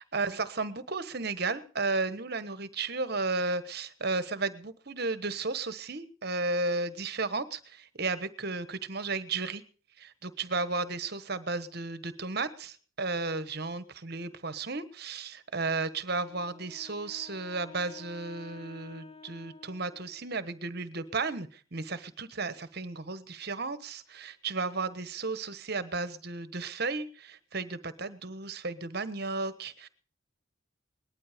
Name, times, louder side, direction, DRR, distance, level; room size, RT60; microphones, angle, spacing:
voice 1, 0.0-9.6 10.0-29.9, right 3 dB, 50° right, 13 dB, 1.3 m, -34 dB
Wind instrument woodwind instrument, 16.2-20.5, left 4 dB, 25° left, 1.0 m, -51 dB
19.5 x 12.0 x 5.1 m, 0.41 s
head